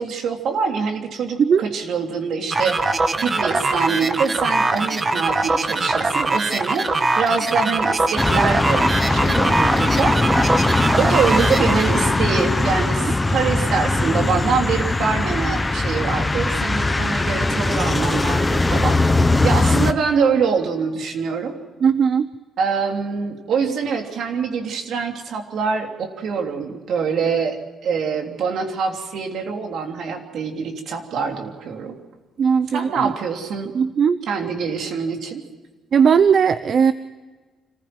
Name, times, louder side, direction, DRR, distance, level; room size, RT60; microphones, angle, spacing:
voice 1, 0.0-10.4 11.0-19.0 19.4-21.6 22.6-32.0 32.7-33.7 34.3-35.4, right 5 dB, 70° right, 3 dB, 3.2 m, -24 dB
sound 1, 2.5-12.2, right 3 dB, 30° right, 1.6 m, -22 dB
sound 2, 8.2-19.9, left 2 dB, 15° left, 1.1 m, -20 dB
voice 2, 21.8-22.3 32.4-33.1 33.7-34.2 35.9-36.9, right 6 dB, 55° right, 13 dB, 0.8 m, -17 dB
26.0 x 15.5 x 7.8 m, 1.3 s
cardioid pair, 90°, 0 cm